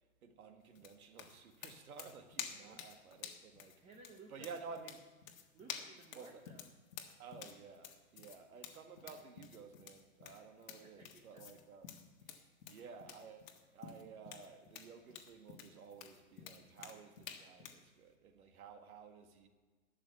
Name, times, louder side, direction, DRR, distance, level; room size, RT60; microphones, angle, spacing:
voice 1, 0.2-3.8 4.3-5.0 6.1-6.4 7.2-12.0 12.3-19.5, right 5 dB, 80° right, 1.8 m, -53 dB
sound 1, 0.8-17.8, left 8 dB, 65° left, 1.6 m, -51 dB
voice 2, 2.4-2.8 3.8-4.8 5.5-6.7 10.8-11.4, right 3 dB, 15° right, 0.8 m, -59 dB
12.5 x 7.3 x 7.9 m
hypercardioid pair, 145°, 43 cm